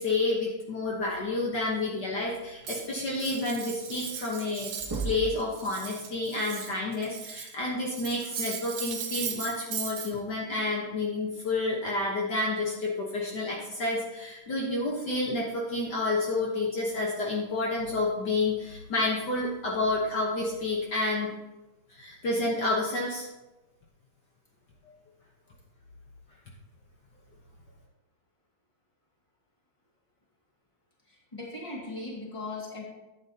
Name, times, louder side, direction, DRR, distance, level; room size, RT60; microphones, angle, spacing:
voice 1, 0.0-4.7 5.0-21.3 21.9-23.3, left 2 dB, 55° left, -3 dB, 1.8 m, -29 dB
Cutlery silverware, 2.6-5.1 5.4-7.5 7.9-10.1, right 7 dB, 65° right, 1.7 m, -38 dB
sound 1, 4.8-5.4 7.2-7.3 9.1-9.2 10.1-10.2, right 4 dB, 20° right, 0.5 m, -34 dB
voice 2, 31.1-32.8, left 2 dB, 15° left, -4 dB, 2.1 m, -38 dB
11.5 x 8.7 x 2.8 m, 1.0 s
omnidirectional pair, 2.3 m